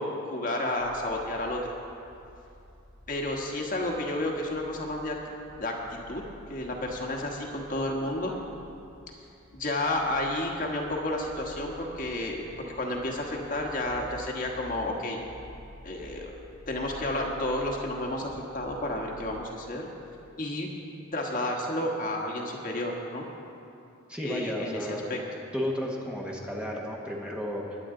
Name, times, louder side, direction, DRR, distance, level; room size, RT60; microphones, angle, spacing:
voice 1, 0.0-1.6 3.1-5.1 5.6-5.7 6.1-6.2 6.5-8.3 9.5-12.4 12.7-15.2 15.8-16.3 16.7-19.9 20.4-20.7 21.1-23.2 24.2-24.8 25.1-25.2, left 1 dB, 40° left, 0 dB, 1.4 m, -31 dB
sound 1, 0.8-19.4, left 1 dB, 85° right, 2.6 m, -50 dB
voice 2, 24.1-25.2 25.5-27.8, equal, 5° right, -2 dB, 1.2 m, -33 dB
21.0 x 9.6 x 3.9 m, 2.7 s
head